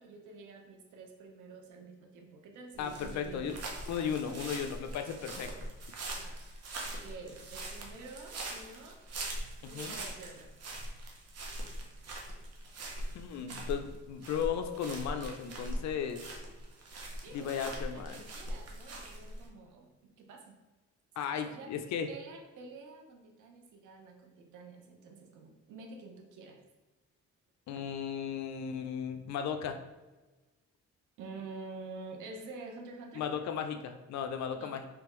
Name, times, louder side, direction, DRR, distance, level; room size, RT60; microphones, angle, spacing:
voice 1, 0.0-3.6 4.2-4.6 6.1-6.4 6.9-9.0 9.6-10.5 17.2-20.6 21.4-21.7 22.1-26.6 31.2-33.3 34.6-34.8, right 3 dB, 85° right, 2 dB, 0.8 m, -48 dB
sound 1, 2.7-19.5, right 1 dB, 55° right, 0.9 m, -42 dB
voice 2, 2.8-3.5 3.9-5.7 9.6-10.0 13.1-16.2 17.3-18.2 21.2-22.1 27.7-29.8 33.1-34.9, left 7 dB, 65° left, 7 dB, 0.4 m, -36 dB
3.4 x 3.3 x 3.0 m, 1.2 s
cardioid pair, 90°, 30 cm